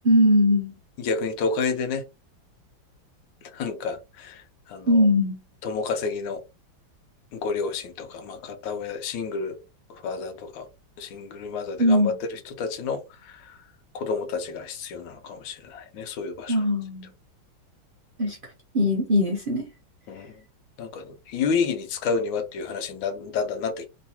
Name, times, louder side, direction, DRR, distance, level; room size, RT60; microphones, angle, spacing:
voice 1, 0.0-0.7 4.9-5.4 11.8-12.2 16.5-17.1 18.2-19.7, left 1 dB, 80° right, 0.4 m, -21 dB
voice 2, 1.0-2.0 3.5-5.1 5.6-6.4 7.3-9.5 9.9-10.6 11.0-13.6 13.9-16.6 20.1-20.3 20.8-23.9, left 5 dB, 90° left, 1.4 m, -30 dB
3.2 x 3.0 x 2.8 m
omnidirectional pair, 2.1 m